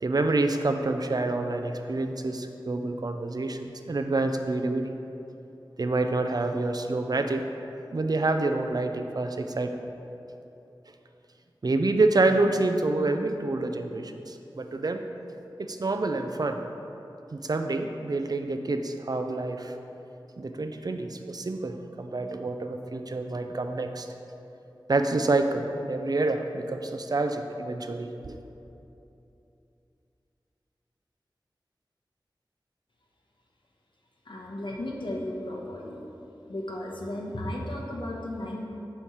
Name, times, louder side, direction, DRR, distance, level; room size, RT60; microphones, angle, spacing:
voice 1, 0.0-4.9 5.8-7.4 7.9-9.7 11.6-15.0 15.6-16.6 17.3-19.8 20.4-24.1 24.9-28.4, right 2 dB, 50° right, 6 dB, 0.5 m, -27 dB
voice 2, 34.3-36.0 36.5-38.6, left 1 dB, 70° left, -2 dB, 1.1 m, -34 dB
8.6 x 3.2 x 5.7 m, 2.8 s
wide cardioid pair, 50°, 8 cm